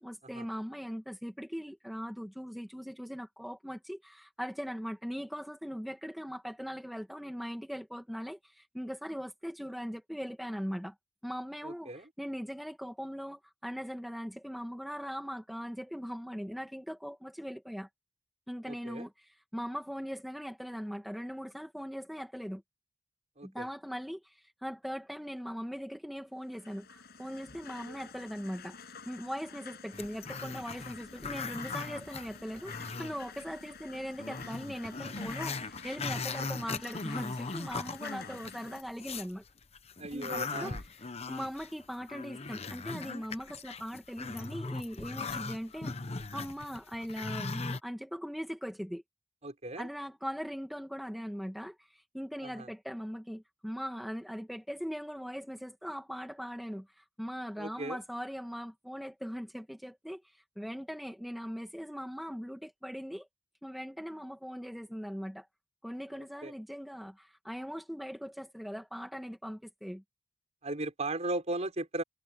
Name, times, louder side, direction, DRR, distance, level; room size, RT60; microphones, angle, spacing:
voice 1, 0.0-11.0 11.2-17.9 18.5-22.6 23.4-39.4 40.1-45.9 46.3-49.0 49.8-63.3 63.6-65.5 65.8-70.0, equal, ahead, 1.8 m, -40 dB
voice 2, 11.6-12.1 18.7-19.1 23.4-23.7 40.0-40.8 49.4-49.9 52.4-52.7 57.6-58.0 66.4-66.5 70.6-72.0, right 2 dB, 40° right, 5.0 m, -37 dB
sound 1, 26.4-38.8, left 5 dB, 60° left, 7.7 m, -50 dB
Growling, 29.9-33.4 33.8-33.9 34.2-39.3 39.7-47.8, left 4 dB, 35° left, 1.0 m, -39 dB
head